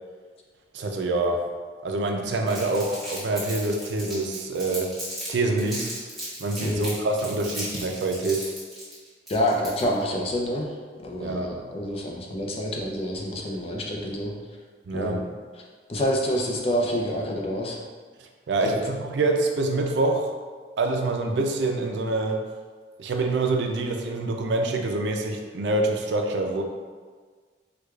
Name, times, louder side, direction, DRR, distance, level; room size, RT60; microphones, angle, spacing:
voice 1, 0.7-1.4 1.8-4.9 5.3-5.9 6.4-8.5 11.2-11.6 14.9-15.2 18.5-20.3 20.8-22.4 23.0-26.6, right 2 dB, 85° right, 3 dB, 0.4 m, -26 dB
Crumpling crinkling, 2.5-5.3 5.6-10.0, equal, ahead, 1.1 m, -36 dB
voice 2, 9.3-10.7 11.0-14.3 14.9-15.2 15.9-17.8 18.6-18.8, equal, 35° left, -1 dB, 0.4 m, -27 dB
4.6 x 2.3 x 2.3 m, 1.5 s
head